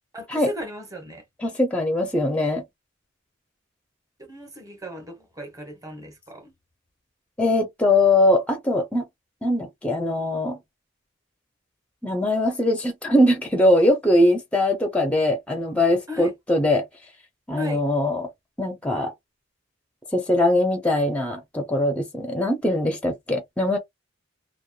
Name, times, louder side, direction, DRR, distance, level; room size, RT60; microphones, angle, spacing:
voice 1, 0.1-1.2 4.2-6.5 16.1-16.3 17.6-17.8, left 1 dB, 15° right, 0.9 m, -35 dB
voice 2, 1.4-2.6 7.4-9.1 9.4-10.6 12.0-16.9 17.5-18.3 18.6-19.1 20.1-23.8, left 1 dB, 5° left, 0.4 m, -21 dB
2.9 x 2.1 x 2.3 m
head